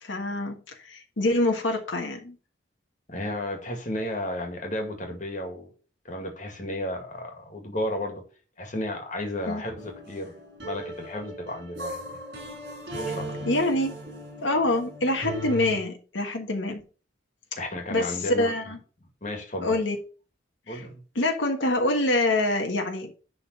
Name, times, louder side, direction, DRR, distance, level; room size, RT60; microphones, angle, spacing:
voice 1, 0.0-2.3 9.5-9.6 13.4-14.0 14.4-16.8 17.9-18.8 19.6-20.0 20.7-20.8 21.1-23.1, left 2 dB, 85° left, 1.5 m, -25 dB
voice 2, 3.1-5.7 6.0-8.2 8.6-10.3 10.6-12.2 13.1-13.3 17.6-18.7 19.2-19.8 20.7-20.9, left 1 dB, 40° left, 2.0 m, -33 dB
sound 1, 9.8-15.8, right 1 dB, 60° right, 4.2 m, -37 dB
10.5 x 4.0 x 5.3 m
head